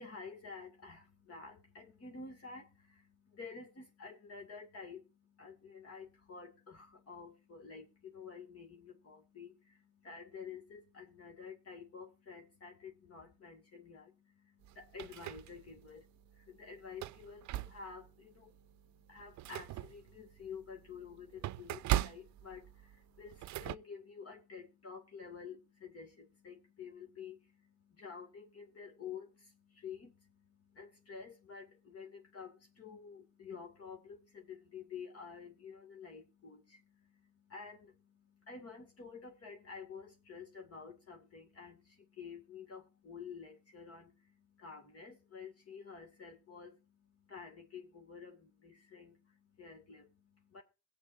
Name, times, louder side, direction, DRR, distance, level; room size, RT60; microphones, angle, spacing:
voice 1, 0.0-46.9 47.1-50.6, left 5 dB, 50° left, 2.6 m, -50 dB
sound 1, 14.6-15.9 16.3-16.4 16.9-18.1 18.6-18.7 19.1-23.8, right 14 dB, 70° right, 0.5 m, -39 dB
22.0 x 8.4 x 2.7 m
cardioid pair, 90°, 30 cm